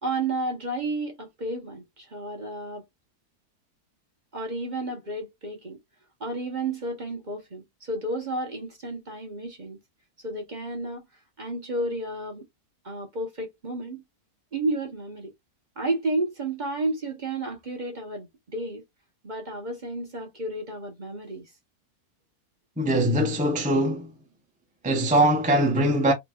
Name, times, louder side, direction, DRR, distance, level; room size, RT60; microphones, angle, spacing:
voice 1, 0.0-2.8 4.3-5.8 6.2-9.8 10.2-11.1 11.4-12.5 12.8-14.0 14.5-15.3 15.8-18.8 19.2-21.5, right 2 dB, 35° right, 0.9 m, -32 dB
voice 2, 22.8-24.1 24.8-26.1, right 1 dB, 10° right, 0.6 m, -22 dB
4.1 x 3.0 x 2.3 m
omnidirectional pair, 1.6 m